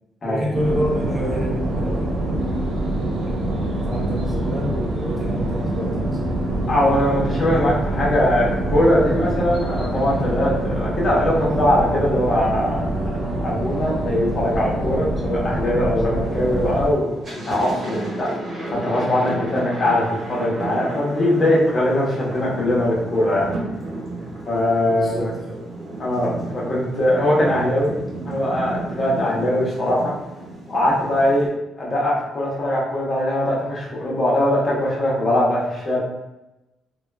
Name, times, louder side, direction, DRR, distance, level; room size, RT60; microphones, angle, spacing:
voice 1, 0.2-2.5 3.2-6.2 7.4-7.5 24.9-25.7, equal, 10° right, -4 dB, 0.5 m, -29 dB
sound 1, 0.5-16.9, right 1 dB, 70° right, 0.6 m, -25 dB
voice 2, 6.7-12.9 13.2-17.1 17.4-18.3 18.8-23.5 24.5-25.3 26.0-27.9 28.2-30.1 30.7-31.5 31.8-36.0, left 1 dB, 35° left, -5 dB, 1.0 m, -21 dB
Thunder, 16.3-16.7 17.0-31.5, right 2 dB, 40° right, 1.1 m, -32 dB
2.9 x 2.3 x 2.2 m, 0.97 s
cardioid pair, 90°, 0 cm